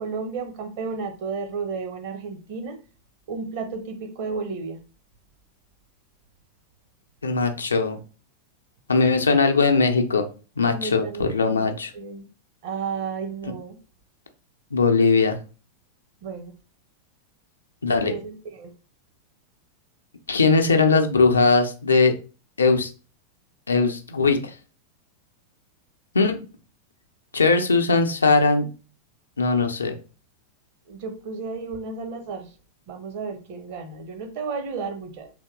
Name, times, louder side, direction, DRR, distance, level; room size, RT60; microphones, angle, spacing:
voice 1, 0.0-2.8 3.3-4.8 10.7-11.7 11.9-12.2 12.6-13.8 16.2-16.5 18.0-18.7 30.9-32.5 32.9-35.3, right 5 dB, 50° right, 0.8 m, -33 dB
voice 2, 7.2-8.0 8.9-10.3 10.6-11.9 14.7-15.4 17.8-18.1 20.3-22.1 22.6-22.9 23.7-24.5 26.1-26.4 27.3-28.6 29.4-29.9, left 4 dB, 75° left, 0.6 m, -20 dB
3.5 x 2.8 x 3.6 m
figure-of-eight pair, 90°, 0 cm